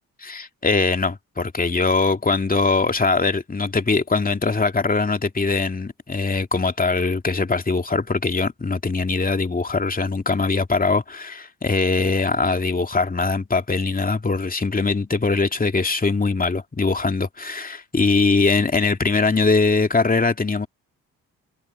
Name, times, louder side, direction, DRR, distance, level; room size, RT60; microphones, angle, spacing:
voice 1, 0.2-20.7, left 4 dB, 25° left, 2.4 m, -21 dB
hypercardioid pair, 50°, 36 cm